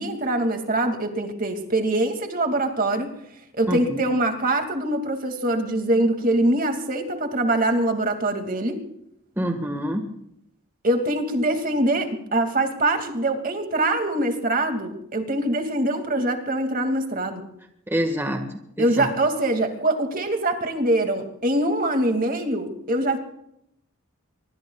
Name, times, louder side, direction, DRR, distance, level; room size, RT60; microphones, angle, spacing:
voice 1, 0.0-3.1 3.5-8.8 10.8-17.5 18.8-23.2, right 1 dB, 40° right, 5 dB, 2.4 m, -23 dB
voice 2, 3.7-4.0 9.4-10.1 17.9-18.4 18.8-19.1, equal, 10° right, 4 dB, 1.7 m, -26 dB
25.0 x 24.0 x 2.4 m, 0.76 s
head